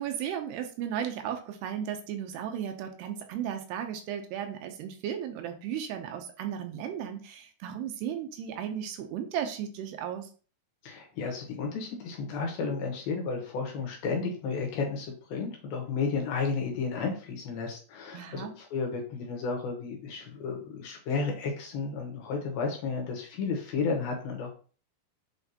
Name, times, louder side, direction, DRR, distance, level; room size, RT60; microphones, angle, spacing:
voice 1, 0.0-10.3 18.1-18.5, right 9 dB, 80° right, 6 dB, 2.7 m, -35 dB
voice 2, 10.8-24.5, left 4 dB, 70° left, 1 dB, 2.8 m, -32 dB
8.1 x 4.3 x 2.9 m, 0.38 s
omnidirectional pair, 5.0 m